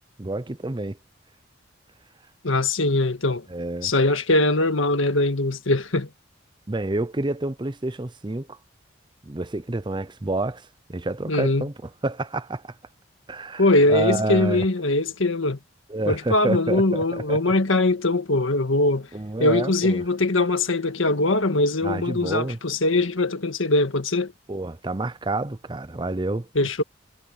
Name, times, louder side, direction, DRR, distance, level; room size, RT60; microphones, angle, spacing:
voice 1, 0.2-1.0 3.5-3.9 6.7-8.6 9.2-12.8 13.3-14.7 15.9-17.5 19.1-20.0 21.8-22.6 24.5-26.7, right 2 dB, 25° right, 0.6 m, -29 dB
voice 2, 2.4-3.4 3.8-6.1 11.3-11.6 13.6-15.6 16.1-19.1 19.4-24.3 26.5-26.8, left 2 dB, 90° left, 1.7 m, -21 dB
head